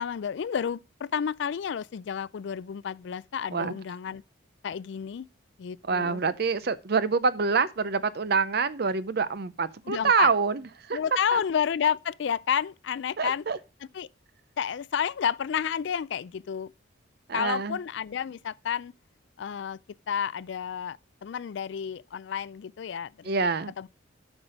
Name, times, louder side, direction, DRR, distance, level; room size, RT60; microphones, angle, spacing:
voice 1, 0.0-4.2 4.6-5.3 5.6-6.2 9.9-10.3 10.9-13.4 13.9-14.1 14.6-16.7 17.3-18.9 19.4-19.8 20.1-23.3 23.8-23.9, left 8 dB, 60° left, 0.3 m, -30 dB
voice 2, 5.8-11.0 11.3-11.4 13.2-13.6 17.3-17.8 23.2-23.7, right 5 dB, 50° right, 0.6 m, -26 dB
8.0 x 6.0 x 5.0 m
head